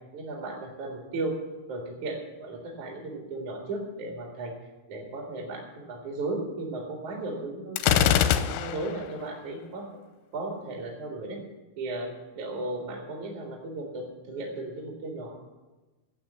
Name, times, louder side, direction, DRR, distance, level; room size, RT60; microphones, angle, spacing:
voice 1, 0.1-1.4 1.7-4.5 4.9-8.1 8.5-9.8 10.3-11.4 11.8-15.4, right 2 dB, 50° right, 0 dB, 2.7 m, -35 dB
Gunshot gunfire, 7.8-9.0, left 9 dB, 85° left, 2.9 m, -23 dB
13.0 x 7.7 x 8.1 m, 1.2 s
omnidirectional pair, 5.5 m